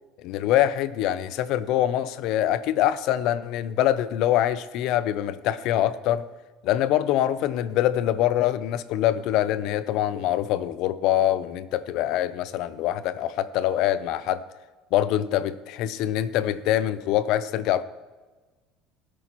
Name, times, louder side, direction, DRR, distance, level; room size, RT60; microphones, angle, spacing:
voice 1, 0.2-6.2 6.6-14.4 14.9-17.8, left 12 dB, 60° left, 15 dB, 0.6 m, -24 dB
18.0 x 8.4 x 3.0 m, 1.3 s
cardioid pair, 135°, 0 cm